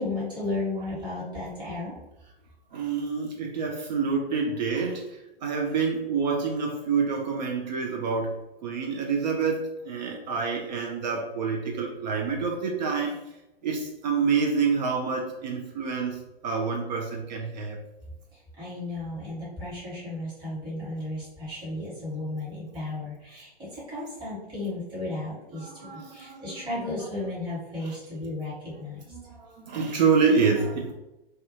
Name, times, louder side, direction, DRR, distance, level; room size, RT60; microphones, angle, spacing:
voice 1, 0.0-1.9 18.3-29.1, left 2 dB, 15° right, -8 dB, 1.1 m, -34 dB
voice 2, 2.7-5.0 5.4-8.4 8.6-13.2 13.6-17.8 25.6-26.8 27.8-28.0 29.1-30.9, right 5 dB, 45° right, 2 dB, 0.4 m, -27 dB
2.3 x 2.2 x 2.7 m, 0.92 s
figure-of-eight pair, 115°, 31 cm